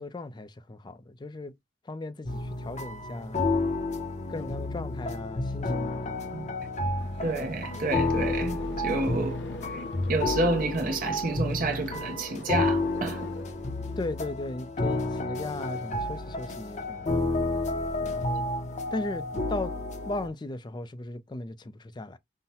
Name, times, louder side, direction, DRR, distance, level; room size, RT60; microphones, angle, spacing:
voice 1, 0.0-1.5 1.9-3.4 4.3-6.4 14.0-17.2 18.0-18.5 18.9-19.7 20.1-22.2, left 2 dB, 25° left, 0.4 m, -37 dB
sound 1, 2.3-20.3, left 2 dB, 40° left, 0.8 m, -31 dB
sound 2, 7.0-14.1, left 2 dB, 75° left, 0.6 m, -44 dB
voice 2, 7.2-9.4 9.7-9.8 10.1-13.3, right 3 dB, 50° right, 0.7 m, -29 dB
5.5 x 2.2 x 2.8 m
head